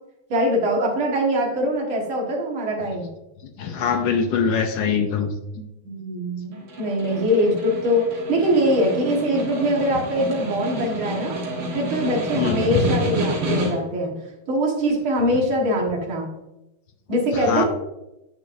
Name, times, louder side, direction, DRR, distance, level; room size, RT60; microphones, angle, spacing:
voice 1, 0.3-3.1 5.5-11.3 11.7-14.2 14.5-16.3 17.1-17.7, equal, 75° right, -1 dB, 2.4 m, -22 dB
voice 2, 3.6-5.3 12.4-12.9 17.5-17.6, left 6 dB, 70° left, 6 dB, 1.3 m, -22 dB
Snare drum, 6.5-14.0, right 1 dB, 90° right, 2.5 m, -29 dB
9.1 x 6.2 x 2.6 m, 0.93 s
omnidirectional pair, 2.3 m